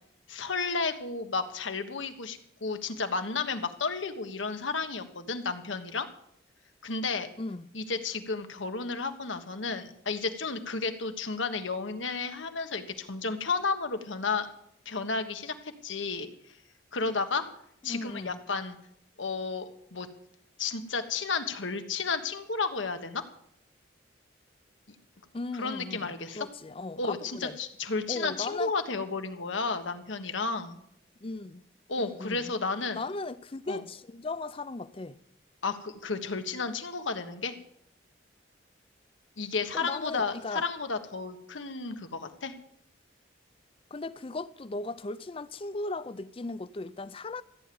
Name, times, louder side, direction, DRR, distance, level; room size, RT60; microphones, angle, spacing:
voice 1, 0.3-6.1 6.8-7.3 7.7-14.5 14.8-16.3 16.9-17.5 17.8-18.8 19.2-20.1 20.6-23.2 25.5-26.5 27.0-30.8 31.9-33.0 33.7-33.8 35.6-37.6 39.4-42.5, left 4 dB, 80° left, 1.3 m, -32 dB
voice 2, 17.8-18.4 25.3-27.6 28.1-28.7 31.2-31.6 32.0-32.5 32.9-35.2 39.7-40.6 43.9-47.4, left 3 dB, 30° left, 0.5 m, -37 dB
14.5 x 9.1 x 7.0 m
head